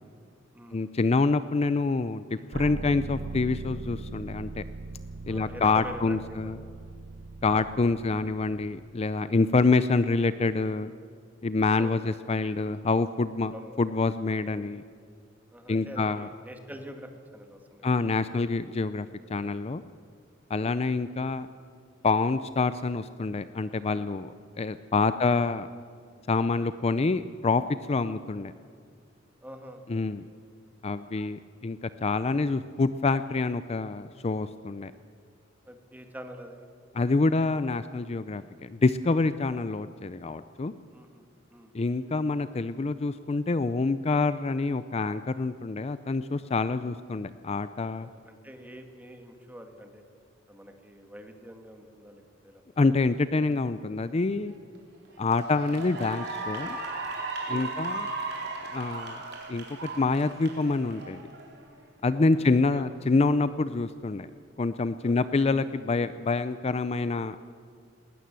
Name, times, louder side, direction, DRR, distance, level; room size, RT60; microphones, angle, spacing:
voice 1, 0.7-4.6 5.3-6.6 7.4-10.9 11.4-14.8 15.7-16.3 17.8-19.8 20.5-21.5 22.0-24.3 24.6-25.7 26.3-27.6 27.9-28.5 29.9-30.2 30.8-34.9 36.9-40.7 41.7-48.1 52.8-54.5 55.2-56.8 57.5-58.1 58.7-59.2 59.5-61.3 62.0-64.3 64.6-67.4, left 3 dB, 30° left, 13 dB, 0.4 m, -26 dB
sound 1, 2.5-9.4, right 3 dB, 80° right, 0.6 m, -40 dB
voice 2, 5.3-6.5 11.8-12.0 13.5-13.8 15.5-17.9 20.6-20.9 25.1-25.3 28.0-28.2 29.4-29.9 30.2-30.3 31.0-31.2 35.7-36.7 40.9-41.7 48.0-50.0 50.5-52.6 55.2-55.4 57.5-57.8 59.1-59.2 62.2-62.5 62.7-62.8 65.0-65.2, equal, 10° right, 5 dB, 1.9 m, -46 dB
Cheering / Applause, 54.5-54.8 55.2-61.7, right 3 dB, 60° right, 4.0 m, -36 dB
19.5 x 19.0 x 7.6 m, 2.3 s
head